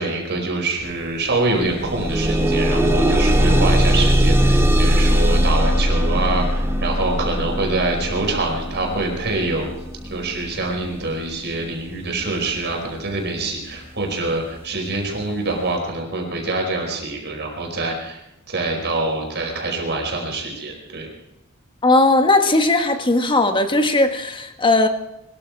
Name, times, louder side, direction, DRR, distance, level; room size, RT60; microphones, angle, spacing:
voice 1, 0.0-9.7 10.1-18.2 18.5-21.1, right 2 dB, 50° right, 1 dB, 5.1 m, -25 dB
sound 1, 0.8-1.0 1.3-12.3 13.1-13.2 13.7-13.8, equal, 10° right, 1.5 m, -20 dB
voice 2, 21.8-24.9, left 2 dB, 25° left, 7 dB, 1.5 m, -17 dB
22.5 x 14.0 x 4.7 m, 0.88 s
head